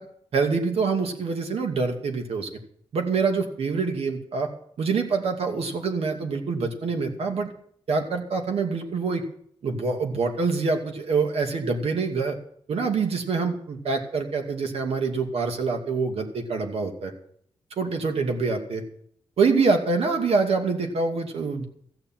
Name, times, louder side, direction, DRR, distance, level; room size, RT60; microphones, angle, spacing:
voice 1, 0.3-2.5 2.9-4.5 4.8-7.5 7.9-9.2 9.6-12.4 12.7-17.1 17.8-18.8 19.4-21.6, right 4 dB, 85° right, 4 dB, 2.4 m, -25 dB
15.0 x 7.1 x 9.0 m, 0.63 s
wide cardioid pair, 160°, 10 cm